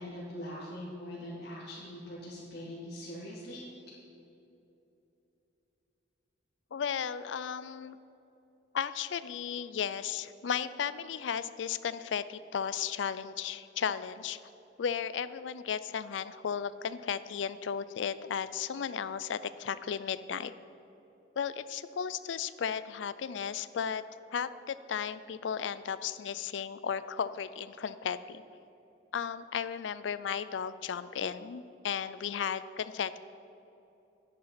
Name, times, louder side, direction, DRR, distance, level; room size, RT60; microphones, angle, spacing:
voice 1, 0.0-3.7, left 1 dB, 60° left, -8 dB, 2.8 m, -42 dB
voice 2, 6.7-8.0 8.7-14.4 14.8-20.5 21.4-24.0 24.3-28.4 29.1-33.2, left 7 dB, 85° left, 14 dB, 0.4 m, -35 dB
10.5 x 10.0 x 5.8 m, 2.9 s
head